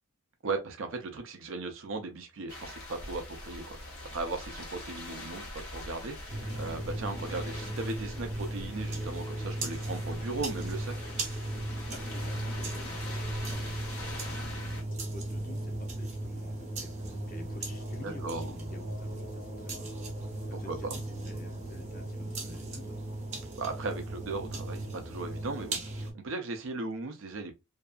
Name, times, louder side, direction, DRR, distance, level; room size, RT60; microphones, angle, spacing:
voice 1, 0.4-10.9 18.0-18.5 20.5-20.9 23.6-27.5, right 3 dB, 65° right, 0.5 m, -37 dB
sound 1, 2.5-14.8, left 1 dB, 85° left, 0.9 m, -43 dB
sound 2, 6.3-26.1, right 1 dB, 30° right, 0.7 m, -37 dB
voice 2, 11.9-23.1, left 2 dB, 40° left, 0.5 m, -50 dB
2.6 x 2.3 x 2.3 m
head